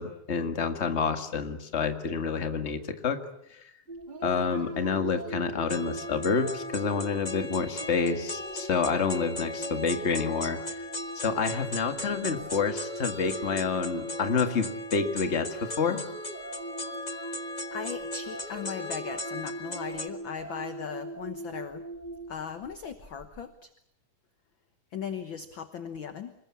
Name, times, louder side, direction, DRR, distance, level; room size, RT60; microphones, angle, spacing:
voice 1, 0.0-3.2 4.2-10.6 11.1-16.0, left 5 dB, 25° left, 7 dB, 1.7 m, -28 dB
sound 1, 3.9-23.4, right 2 dB, 15° right, 3.0 m, -40 dB
sound 2, 5.7-20.1, left 2 dB, 80° left, 0.3 m, -38 dB
voice 2, 17.7-21.8 22.3-23.7 24.9-26.3, left 7 dB, 55° left, 10 dB, 1.4 m, -38 dB
26.0 x 21.5 x 8.5 m, 0.74 s
omnidirectional pair, 3.5 m